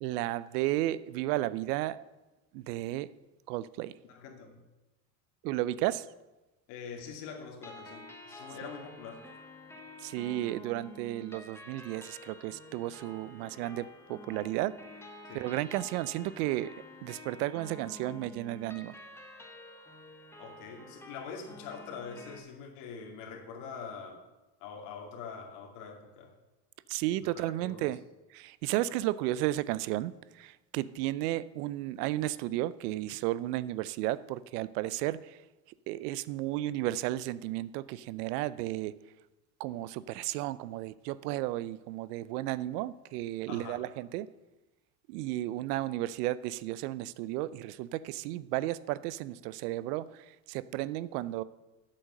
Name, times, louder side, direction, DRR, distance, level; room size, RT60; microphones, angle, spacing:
voice 1, 0.0-2.0 2.5-3.1 3.5-3.9 5.4-6.1 10.0-14.8 15.3-16.7 17.0-18.9 26.9-28.0 28.3-35.4 35.9-38.9 39.6-44.3 45.1-51.4, right 15 dB, 80° right, 18 dB, 0.6 m, -33 dB
voice 2, 4.0-4.6 6.7-9.2 15.2-15.4 20.4-24.2 24.6-26.3 27.2-27.8 43.5-43.8, left 6 dB, 65° left, 1 dB, 2.4 m, -44 dB
sound 1, 7.6-22.4, left 1 dB, 5° left, 1.2 m, -49 dB
8.6 x 7.7 x 6.5 m, 1.1 s
supercardioid pair, 120°, 46 cm